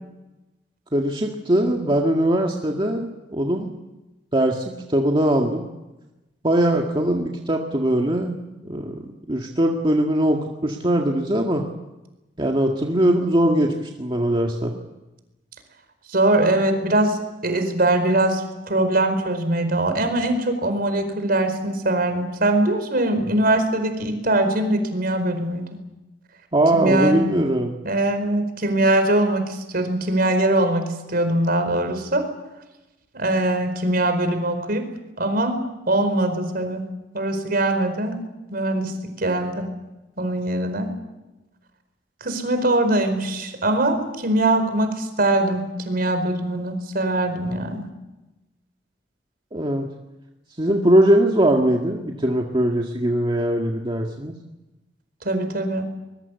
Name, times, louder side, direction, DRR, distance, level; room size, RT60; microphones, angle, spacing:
voice 1, 0.9-3.7 4.3-5.6 6.4-8.4 8.6-11.6 12.4-14.7 26.5-27.7 49.5-49.9 50.6-54.3, right 1 dB, 30° right, 1 dB, 1.9 m, -21 dB
voice 2, 16.1-25.7 26.7-27.2 27.8-32.3 33.1-34.8 35.2-35.6 35.9-36.8 37.1-38.2 38.5-39.6 40.2-40.9 42.2-47.8 55.2-55.8, right 1 dB, 55° right, 8 dB, 4.6 m, -22 dB
23.0 x 21.5 x 8.3 m, 1.0 s
head